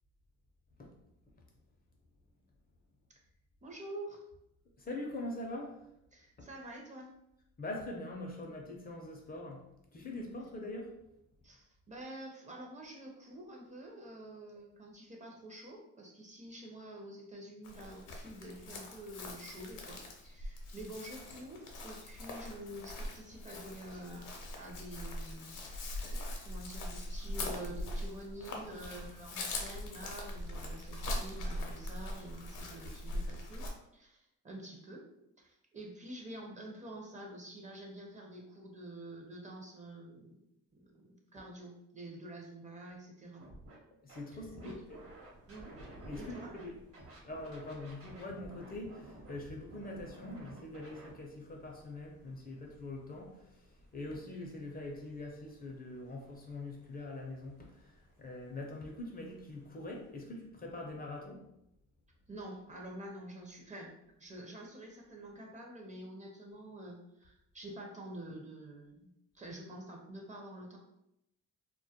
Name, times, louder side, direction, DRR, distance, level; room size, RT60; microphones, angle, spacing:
voice 1, 3.6-4.2 6.1-7.1 11.4-24.3 24.6-26.2 26.4-33.7 33.9-35.1 35.4-40.4 40.7-43.4 44.6-44.8 45.5-45.8 46.1-46.5 62.3-63.9 64.2-69.1 69.3-70.8, right 1 dB, 25° right, 0 dB, 0.5 m, -48 dB
voice 2, 4.8-5.9 6.4-6.5 7.6-9.6 9.9-10.9 41.4-41.5 44.0-44.8 46.0-46.8 47.2-61.4, left 2 dB, 30° left, 1 dB, 0.4 m, -43 dB
Chirp tweet, 17.6-33.7, left 1 dB, 80° left, 0.6 m, -41 dB
Scratching (performance technique), 43.4-43.7 44.1-46.6 46.9-51.1, right 1 dB, 50° right, 0.8 m, -53 dB
Thunder, 44.6-60.1, right 1 dB, 80° right, 1.0 m, -60 dB
2.2 x 2.1 x 2.7 m, 0.83 s
cardioid pair, 90°, 30 cm